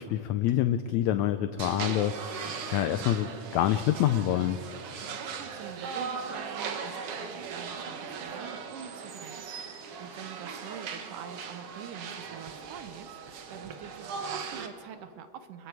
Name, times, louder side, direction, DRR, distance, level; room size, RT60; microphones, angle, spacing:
voice 1, 0.0-4.6, left 11 dB, 85° left, 10 dB, 1.6 m, -27 dB
sound 1, 1.6-14.7, right 5 dB, 60° right, 1.7 m, -38 dB
voice 2, 5.0-15.7, right 9 dB, 75° right, 10 dB, 2.3 m, -46 dB
30.0 x 21.5 x 4.7 m, 2.9 s
omnidirectional pair, 4.0 m